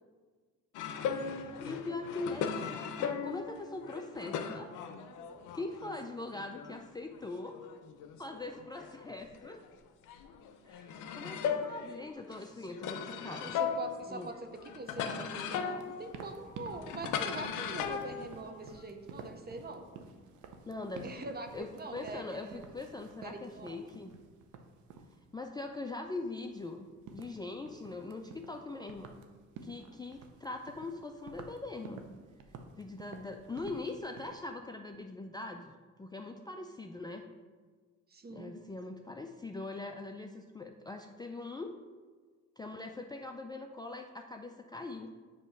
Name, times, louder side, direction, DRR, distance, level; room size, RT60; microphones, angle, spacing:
sound 1, 0.7-6.0 6.3-9.7 10.0-18.9, left 7 dB, 90° left, 0.6 m, -38 dB
voice 1, 1.3-4.7 5.5-7.6 8.2-9.6 10.6-13.5 14.1-14.3 20.7-24.2 25.3-29.1 29.6-32.1 32.8-37.2 38.3-41.8 42.6-45.1, left 2 dB, 15° left, 4 dB, 0.3 m, -42 dB
voice 2, 13.3-19.9 21.0-21.5 21.7-22.7 23.2-23.8 38.1-38.5, right 2 dB, 30° right, 6 dB, 0.8 m, -43 dB
sound 2, 14.8-34.3, right 4 dB, 80° right, 0.7 m, -52 dB
7.7 x 3.0 x 5.8 m, 1.5 s
cardioid pair, 90°, 30 cm